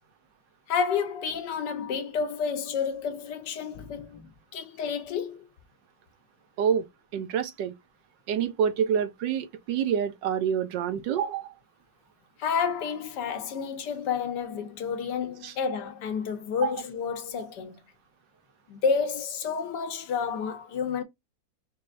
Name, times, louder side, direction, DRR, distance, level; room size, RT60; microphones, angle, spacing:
voice 1, 0.7-5.5 12.4-17.8 18.7-21.0, left 6 dB, 70° left, 1.4 m, -30 dB
voice 2, 7.1-7.7 8.3-11.5 15.4-15.5 16.6-16.7, right 8 dB, 75° right, 1.3 m, -27 dB
5.5 x 3.3 x 2.5 m
omnidirectional pair, 2.0 m